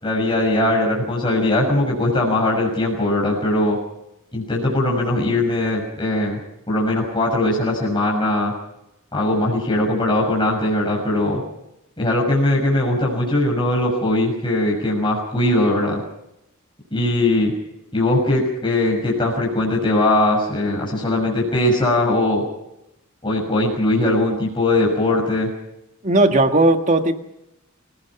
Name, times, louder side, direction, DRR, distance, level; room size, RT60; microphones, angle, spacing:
voice 1, 0.0-3.8 4.3-6.4 6.7-8.5 9.1-11.4 12.0-16.0 16.9-17.5 17.9-22.4 23.2-25.5, left 1 dB, 25° left, -3 dB, 6.4 m, -20 dB
voice 2, 26.0-27.2, right 2 dB, 35° right, 6 dB, 1.7 m, -16 dB
28.5 x 17.5 x 6.0 m, 0.85 s
head